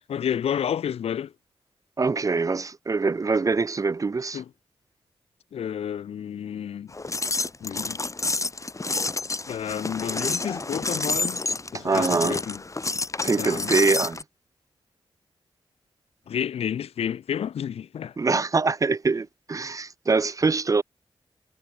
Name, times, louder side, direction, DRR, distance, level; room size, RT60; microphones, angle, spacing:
voice 1, 0.1-1.3 4.3-4.5 5.5-6.9 7.6-8.0 9.5-11.4 11.7-12.6 13.4-13.7 16.3-18.2, left 9 dB, 75° left, 0.4 m, -30 dB
voice 2, 2.0-4.4 11.7-12.4 13.2-14.2 18.2-20.8, right 4 dB, 35° right, 0.4 m, -24 dB
sound 1, 6.9-14.2, left 3 dB, 30° left, 1.7 m, -29 dB
cardioid pair, 60°, 10 cm